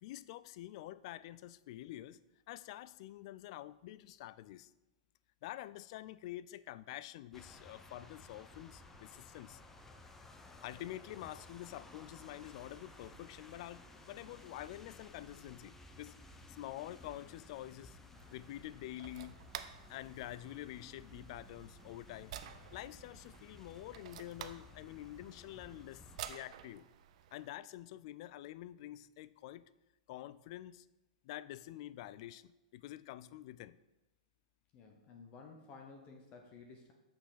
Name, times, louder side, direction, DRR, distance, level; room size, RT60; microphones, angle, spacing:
voice 1, 0.0-2.2 2.5-4.7 5.4-9.6 10.6-16.1 16.5-18.0 18.3-19.4 19.9-22.3 22.7-26.9 27.3-29.6 30.1-30.9 31.2-33.8, left 14 dB, 50° left, 17 dB, 0.3 m, -47 dB
sound 1, 7.3-26.3, left 2 dB, 10° left, 0.6 m, -56 dB
sound 2, 18.1-27.5, right 10 dB, 60° right, 0.5 m, -52 dB
voice 2, 34.7-36.9, left 4 dB, 30° left, 3 dB, 0.9 m, -54 dB
6.6 x 5.8 x 5.6 m, 1.0 s
hypercardioid pair, 145°, 4 cm